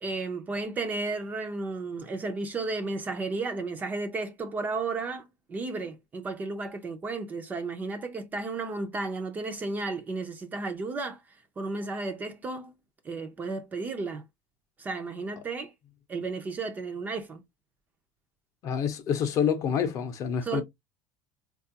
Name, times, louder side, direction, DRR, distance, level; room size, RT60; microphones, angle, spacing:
voice 1, 0.0-11.2 11.6-12.7 13.0-14.2 14.8-15.7 16.1-17.4 20.4-20.6, right 3 dB, 20° right, 0.4 m, -33 dB
voice 2, 18.6-20.6, left 7 dB, 40° left, 0.7 m, -27 dB
4.3 x 2.3 x 2.7 m
cardioid pair, 165°, 9 cm